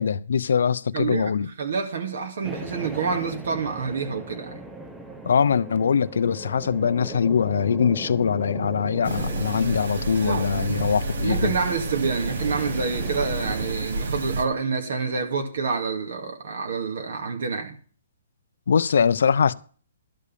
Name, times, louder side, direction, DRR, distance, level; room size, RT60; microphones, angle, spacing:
voice 1, 0.0-1.5 5.2-11.5 18.7-19.5, left 6 dB, 65° left, 0.6 m, -22 dB
voice 2, 0.9-4.6 10.1-10.5 11.2-17.8, right 5 dB, 55° right, 2.1 m, -28 dB
sound 1, 2.4-13.7, right 2 dB, 5° right, 0.6 m, -40 dB
sound 2, 9.0-14.4, right 2 dB, 70° right, 2.3 m, -30 dB
12.5 x 5.2 x 8.4 m
hypercardioid pair, 175°, 0 cm